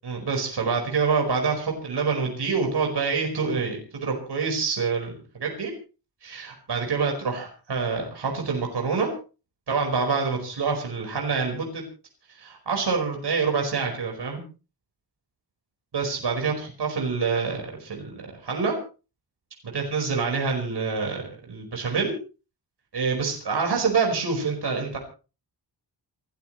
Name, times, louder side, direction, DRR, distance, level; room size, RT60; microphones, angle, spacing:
voice 1, 0.0-5.7 6.2-9.1 9.7-11.8 12.4-14.4 15.9-18.7 19.6-22.1 22.9-25.0, right 5 dB, 70° right, 1 dB, 5.1 m, -26 dB
28.0 x 13.5 x 3.2 m, 0.35 s
wide cardioid pair, 160°, 42 cm